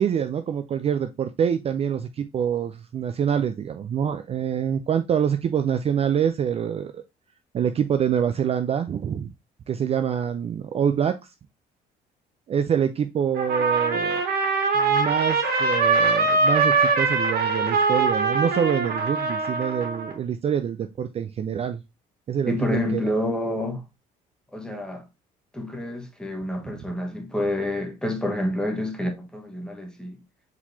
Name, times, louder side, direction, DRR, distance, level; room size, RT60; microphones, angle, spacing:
voice 1, 0.0-7.0 7.5-9.3 9.7-11.2 12.5-14.2 14.7-21.8 22.3-23.0 26.6-26.7, right 8 dB, 35° right, 0.4 m, -25 dB
Trumpet, 13.4-20.1, right 4 dB, 65° right, 1.9 m, -22 dB
voice 2, 22.5-23.8 24.5-25.0 25.5-30.2, left 1 dB, 5° left, 1.2 m, -28 dB
4.6 x 4.0 x 2.6 m
cardioid pair, 110°, 17 cm